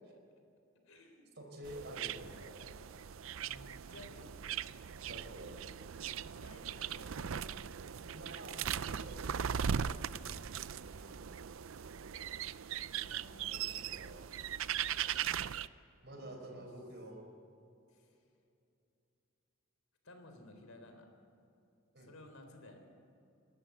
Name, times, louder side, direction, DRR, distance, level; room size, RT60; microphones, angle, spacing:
voice 1, 0.9-1.3 2.6-2.8 3.4-4.4 6.3-7.3 10.1-11.3 13.0-13.8 15.2-15.3 16.2-16.6 17.9-18.2 20.0-21.1 22.0-22.9, left 2 dB, 80° left, 5 dB, 3.8 m, -57 dB
voice 2, 1.4-2.6 5.1-5.6 8.1-9.6 11.0-11.2 13.5-14.3 16.0-17.2 21.9-22.1, right 1 dB, 50° right, 2 dB, 5.1 m, -49 dB
sound 1, 1.6-15.7, right 8 dB, 70° right, 0.5 m, -39 dB
29.0 x 13.0 x 8.2 m, 2.7 s
head